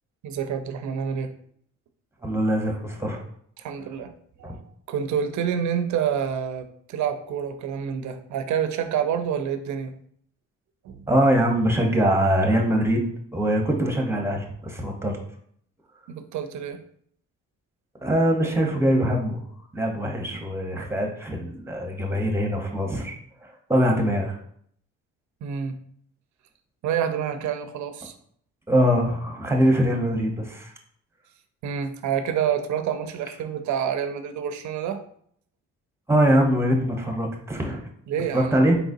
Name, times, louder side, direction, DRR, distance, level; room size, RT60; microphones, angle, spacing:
voice 1, 0.2-1.3 3.6-4.1 4.4-4.6 4.9-9.9 10.8-11.0 16.1-16.8 25.4-25.8 26.8-28.1 31.6-35.0 38.1-38.6, right 8 dB, 70° right, 8 dB, 0.6 m, -28 dB
voice 2, 2.2-3.2 4.4-4.5 11.1-13.0 13.3-15.2 18.0-19.4 19.7-23.1 23.7-24.4 28.7-30.7 36.1-37.9 38.3-38.8, equal, 10° right, 2 dB, 0.9 m, -22 dB
4.3 x 3.9 x 2.6 m, 0.64 s
cardioid pair, 90°, 30 cm